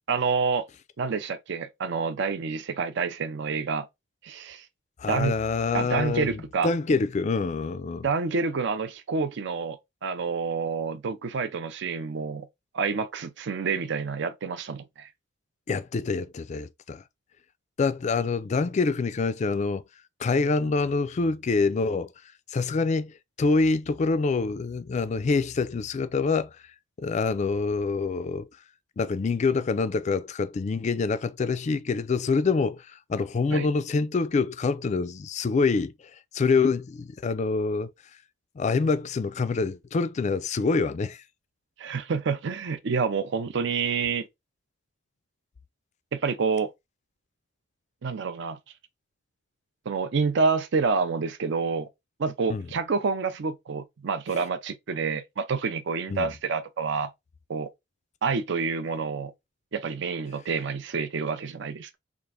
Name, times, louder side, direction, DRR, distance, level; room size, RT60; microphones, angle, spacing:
voice 1, 0.1-0.7 1.0-3.9 4.2-4.6 5.1-5.3 5.7-6.7 8.0-12.5 12.7-15.1 33.5-33.7 41.8-44.3 46.1-46.7 48.0-48.6 49.9-51.9 52.2-57.1 57.5-57.7 58.2-59.3 59.7-62.0, right 5 dB, 60° right, 0.5 m, -28 dB
voice 2, 5.0-8.1 15.7-17.0 17.8-19.8 20.2-22.1 22.5-26.5 27.0-28.5 29.0-35.9 36.3-37.9 38.6-41.2 52.5-52.7 56.1-56.3, left 4 dB, 35° left, 0.3 m, -26 dB
3.6 x 2.4 x 3.3 m
head